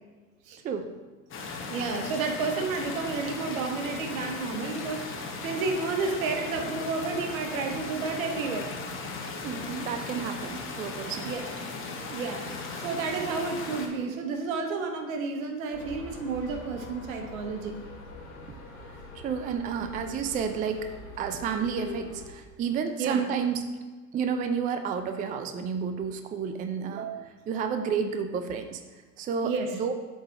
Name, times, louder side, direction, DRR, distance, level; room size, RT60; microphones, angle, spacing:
sound 1, 1.3-13.9, left 3 dB, 30° left, 1.2 m, -37 dB
voice 1, 1.7-8.7 11.2-11.5 12.1-17.8 23.0-23.2 26.9-27.3 29.4-29.7, right 4 dB, 70° right, 4 dB, 1.2 m, -31 dB
voice 2, 9.4-11.4 18.9-23.7 24.1-27.1 27.5-28.8 29.2-29.9, right 6 dB, 20° right, 7 dB, 0.4 m, -31 dB
sound 2, 15.7-22.3, left 3 dB, 75° left, 1.5 m, -44 dB
7.8 x 3.9 x 4.6 m, 1.3 s
hypercardioid pair, 90°, 42 cm